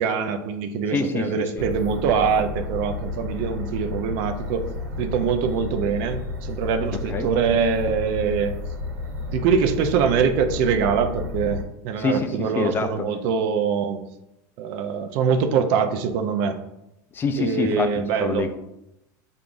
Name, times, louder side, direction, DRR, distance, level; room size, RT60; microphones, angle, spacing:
voice 1, 0.0-4.7 5.0-8.5 9.3-14.0 14.6-16.6 17.4-18.5, right 6 dB, 60° right, 8 dB, 0.5 m, -23 dB
voice 2, 0.9-1.7 7.1-7.3 12.0-13.1 17.1-17.9 18.2-18.6, left 4 dB, 20° left, 8 dB, 0.3 m, -26 dB
sound 1, 1.6-11.6, left 3 dB, 90° right, 1.3 m, -32 dB
6.6 x 2.4 x 2.5 m, 0.86 s
supercardioid pair, 130°, 10 cm